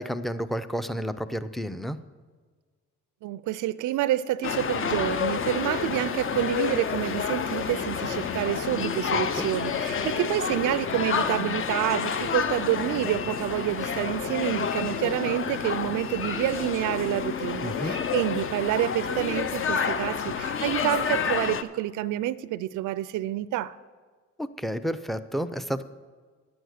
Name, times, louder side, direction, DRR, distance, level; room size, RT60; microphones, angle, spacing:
voice 1, 0.0-2.0 9.1-9.5 17.6-18.0 24.4-25.8, equal, ahead, 0.5 m, -31 dB
voice 2, 3.2-23.7, right 14 dB, 80° right, 0.5 m, -28 dB
sound 1, 4.4-21.6, left 6 dB, 45° left, 0.6 m, -29 dB
10.5 x 8.0 x 6.5 m
cardioid pair, 90°, 30 cm